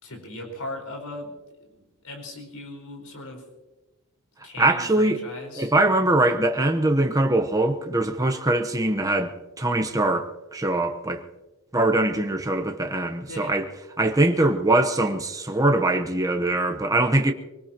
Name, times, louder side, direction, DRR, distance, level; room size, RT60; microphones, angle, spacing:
voice 1, 0.0-1.3 1.7-3.5 4.4-5.7 13.3-13.6, left 2 dB, 85° left, 4.7 m, -38 dB
voice 2, 4.6-5.2 5.6-11.2 11.7-13.6 14.0-17.3, right 2 dB, 15° right, 1.0 m, -22 dB
24.5 x 19.0 x 3.0 m
head